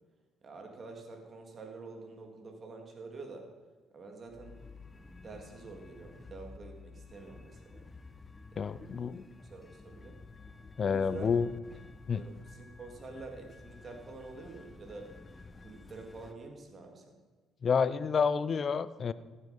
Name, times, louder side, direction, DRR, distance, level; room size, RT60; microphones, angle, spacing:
voice 1, 0.4-3.5 3.9-4.6 5.1-7.9 8.5-8.7 9.0-9.1 9.4-10.2 10.8-11.4 12.1-15.1 15.6-17.2, right 3 dB, 45° right, 3 dB, 3.4 m, -47 dB
sound 1, 4.3-16.3, left 3 dB, 25° left, 1.2 m, -52 dB
voice 2, 8.6-9.3 10.8-11.5 12.1-12.2 17.6-19.1, left 6 dB, 50° left, 16 dB, 0.7 m, -29 dB
15.0 x 9.8 x 5.5 m, 1.4 s
supercardioid pair, 60°, 0 cm